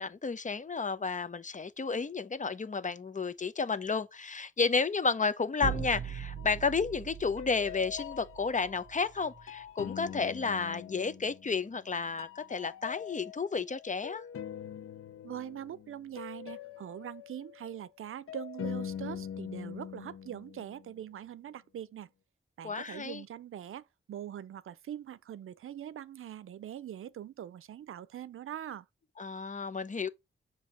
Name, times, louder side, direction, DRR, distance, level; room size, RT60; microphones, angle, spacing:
voice 1, 0.0-14.2 22.6-23.2 29.2-30.1, left 4 dB, 35° left, 0.7 m, -32 dB
sound 1, 5.6-9.5, right 8 dB, 30° right, 0.6 m, -40 dB
sound 2, 6.4-6.9 7.4-11.9 12.2-21.0, left 9 dB, 90° left, 0.6 m, -44 dB
voice 2, 15.2-22.1 22.6-28.9, right 10 dB, 85° right, 0.5 m, -43 dB
7.2 x 2.9 x 5.9 m
cardioid pair, 65°, 21 cm